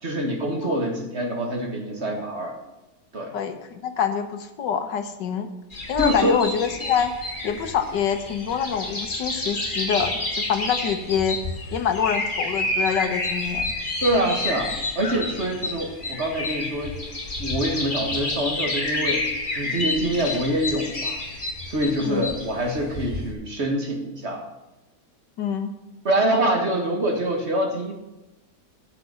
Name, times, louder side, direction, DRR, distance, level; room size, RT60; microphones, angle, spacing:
voice 1, 0.0-2.6 3.1-3.3 6.0-6.4 14.0-17.0 17.4-19.3 19.5-21.2 21.7-24.5 26.0-27.9, right 1 dB, 40° right, 3 dB, 1.9 m, -25 dB
voice 2, 3.3-5.5 5.9-7.1 7.4-10.2 10.5-11.4 11.7-13.7 22.0-22.3 25.4-25.7, left 7 dB, 85° left, 8 dB, 1.7 m, -25 dB
sound 1, 5.7-23.3, left 2 dB, 30° left, 1.8 m, -29 dB
9.7 x 6.9 x 7.4 m, 1.0 s
omnidirectional pair, 1.8 m